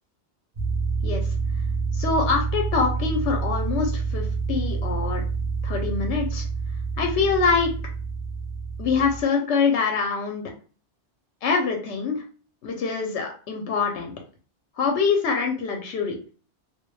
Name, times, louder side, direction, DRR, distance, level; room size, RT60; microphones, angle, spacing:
sound 1, 0.6-9.2, right 4 dB, 45° right, 0.6 m, -27 dB
voice 1, 1.9-5.2 5.6-6.5 7.0-7.7 8.8-10.4 11.4-12.2 12.6-14.1 14.8-16.2, left 5 dB, 85° left, 2 dB, 0.9 m, -24 dB
2.3 x 2.1 x 3.0 m, 0.38 s
omnidirectional pair, 1.1 m